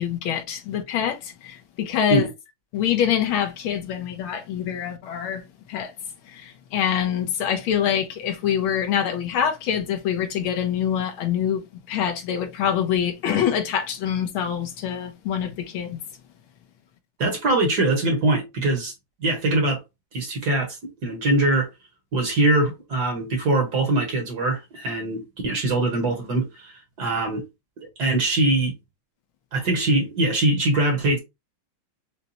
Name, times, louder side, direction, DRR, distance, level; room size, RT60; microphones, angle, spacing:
voice 1, 0.0-2.3 2.7-5.9 6.2-16.0, left 9 dB, 75° left, 1.5 m, -25 dB
voice 2, 17.2-18.9 19.2-19.8 20.1-21.7 22.1-26.7 27.0-27.4 27.8-28.7 29.5-31.2, right 2 dB, 55° right, 1.4 m, -22 dB
5.3 x 2.1 x 2.8 m
omnidirectional pair, 2.4 m